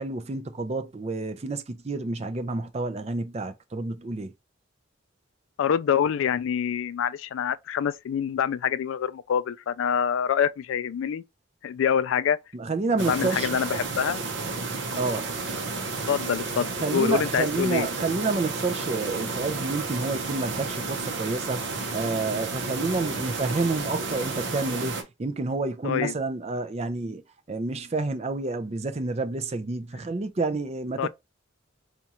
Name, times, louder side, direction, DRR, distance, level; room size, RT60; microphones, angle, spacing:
voice 1, 0.0-4.3 12.5-13.6 14.9-15.4 16.8-27.2 27.5-31.1, right 3 dB, 30° right, 0.4 m, -29 dB
voice 2, 5.6-11.2 11.6-12.4 13.1-14.2 16.1-17.9 25.8-26.1 31.0-31.1, left 8 dB, 75° left, 0.3 m, -26 dB
sound 1, 13.0-25.0, right 3 dB, 60° right, 0.8 m, -32 dB
4.2 x 2.4 x 2.8 m
head